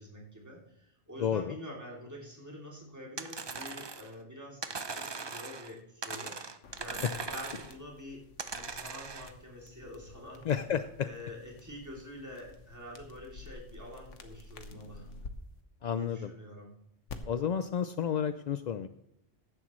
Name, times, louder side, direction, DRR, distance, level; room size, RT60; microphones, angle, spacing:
voice 1, 0.0-6.4 6.8-8.2 8.5-10.5 11.0-15.1 16.0-16.7, left 1 dB, 15° right, -2 dB, 2.9 m, -46 dB
voice 2, 1.2-1.6 7.0-7.1 10.4-11.1 15.8-16.3 17.3-18.9, left 8 dB, 60° left, 11 dB, 0.4 m, -31 dB
sound 1, 3.2-4.1 4.6-5.7 6.0-7.7 8.4-9.3, right 4 dB, 30° right, 0.5 m, -40 dB
sound 2, 6.6-15.3 17.1-17.2, left 4 dB, 80° left, 1.4 m, -51 dB
15.0 x 11.5 x 3.1 m, 0.77 s
omnidirectional pair, 1.2 m